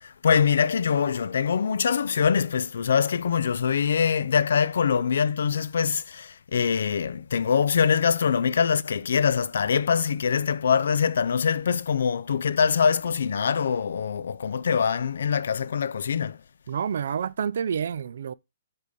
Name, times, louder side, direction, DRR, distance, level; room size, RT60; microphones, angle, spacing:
voice 1, 0.0-16.4, left 6 dB, 75° left, 0.4 m, -24 dB
voice 2, 16.7-18.3, right 7 dB, 70° right, 0.3 m, -28 dB
5.5 x 3.9 x 4.9 m
hypercardioid pair, 155°, 0 cm